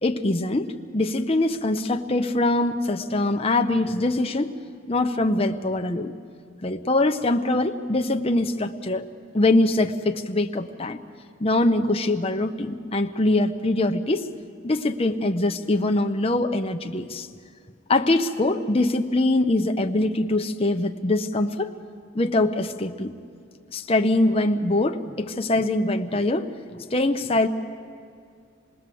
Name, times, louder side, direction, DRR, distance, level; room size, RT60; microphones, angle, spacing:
voice 1, 0.0-4.5 4.9-6.1 6.6-9.0 9.3-11.0 11.4-14.3 14.6-17.3 17.9-21.7 22.1-23.1 23.7-27.5, left 2 dB, 30° left, 5 dB, 0.9 m, -23 dB
27.5 x 19.5 x 7.8 m, 2.3 s
head